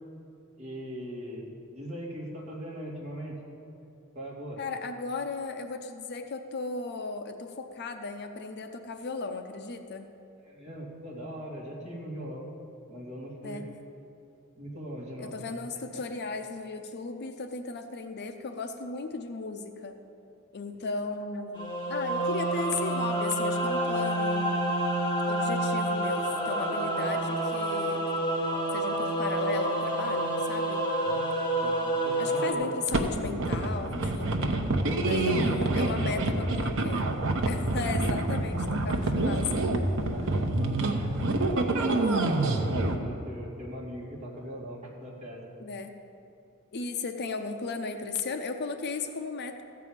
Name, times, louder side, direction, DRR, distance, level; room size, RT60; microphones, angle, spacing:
voice 1, 0.6-3.4 4.1-4.6 10.5-12.5 12.9-13.6 14.5-15.3 15.7-15.8 31.0-31.3 31.6-32.8 35.0-36.6 40.1-42.7 43.0-45.4, equal, 30° right, -5 dB, 2.4 m, -40 dB
voice 2, 4.6-10.1 13.4-13.6 15.2-20.0 20.5-24.7 25.3-28.1 28.7-30.8 32.2-34.4 35.0-37.1 37.4-39.5 45.6-45.9 46.7-49.6, left 3 dB, 50° left, 7 dB, 0.6 m, -36 dB
sound 1, 21.5-32.5, right 1 dB, 20° left, 1.6 m, -28 dB
sound 2, 32.9-43.0, right 2 dB, 60° right, 0.9 m, -27 dB
14.5 x 4.8 x 8.8 m, 2.7 s
head